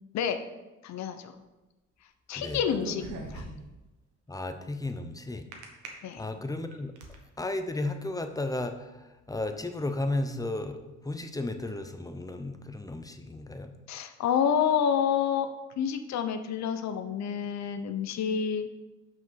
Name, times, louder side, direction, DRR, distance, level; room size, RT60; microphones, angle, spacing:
voice 1, 0.8-1.3 2.3-3.4 6.0-6.2 13.9-15.5 15.8-18.7, left 8 dB, 65° left, 8 dB, 0.7 m, -28 dB
sound 1, 2.6-3.8 5.5-5.9 6.5-7.2, right 3 dB, 70° right, 1.4 m, -40 dB
voice 2, 4.3-5.5 6.2-6.9 7.4-13.7, left 2 dB, 10° left, 8 dB, 0.7 m, -34 dB
5.9 x 5.1 x 5.7 m, 1.1 s
cardioid pair, 90°, 30 cm